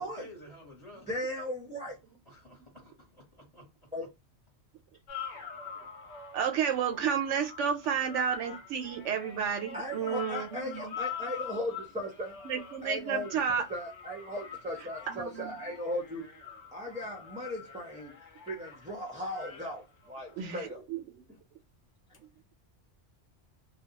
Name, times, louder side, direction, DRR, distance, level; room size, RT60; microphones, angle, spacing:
voice 1, 0.0-1.2 2.3-3.2 3.5-3.6, left 1 dB, 30° left, 1.0 m, -51 dB
voice 2, 1.1-2.0 3.9-4.1 9.7-12.3 12.8-16.2 16.7-20.8, left 1 dB, 10° right, 0.5 m, -37 dB
sound 1, 5.1-20.6 22.1-22.2, left 7 dB, 75° left, 1.0 m, -45 dB
voice 3, 6.3-10.9 12.4-13.7 15.1-15.5 20.4-21.2, right 7 dB, 90° right, 0.9 m, -31 dB
2.3 x 2.1 x 2.7 m
omnidirectional pair, 1.2 m